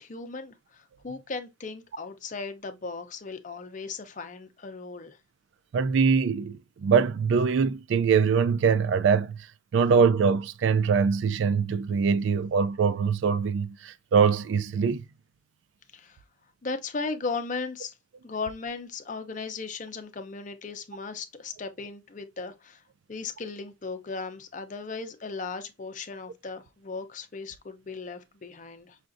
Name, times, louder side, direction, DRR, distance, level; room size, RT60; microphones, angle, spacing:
voice 1, 0.0-5.2 15.9-16.2 16.6-17.9 18.2-22.8 23.1-29.0, left 4 dB, 40° left, 0.5 m, -37 dB
voice 2, 5.7-9.4 9.7-15.0, right 6 dB, 65° right, 0.3 m, -23 dB
5.6 x 2.5 x 2.5 m
head